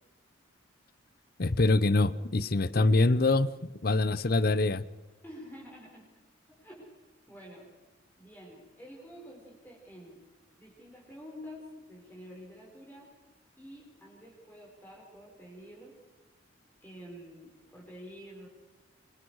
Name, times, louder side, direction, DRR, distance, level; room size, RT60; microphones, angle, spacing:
voice 1, 1.4-4.9, left 2 dB, 50° left, 18 dB, 0.7 m, -25 dB
voice 2, 5.2-6.1 6.5-7.7 8.2-10.2 10.6-13.1 13.6-16.0 16.8-18.5, equal, 10° left, -3 dB, 4.7 m, -48 dB
26.5 x 23.5 x 4.8 m, 1.1 s
head